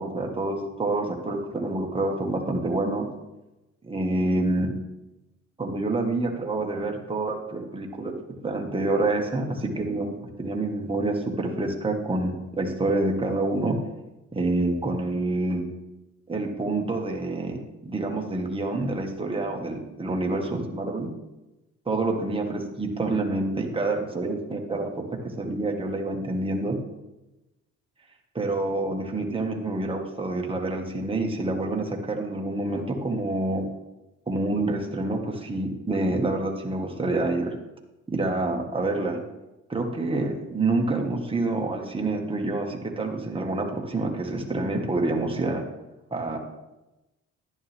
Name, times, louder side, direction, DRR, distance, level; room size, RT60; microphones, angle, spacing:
voice 1, 0.0-3.1 3.8-4.7 5.6-8.1 8.4-13.8 14.3-15.6 16.3-17.6 17.8-21.1 21.9-26.8 28.3-33.7 34.3-37.5 38.1-39.2 39.7-45.7 46.1-46.4, right 2 dB, 20° right, 1 dB, 1.9 m, -27 dB
11.0 x 10.5 x 3.7 m, 1.0 s
cardioid pair, 90°, 30 cm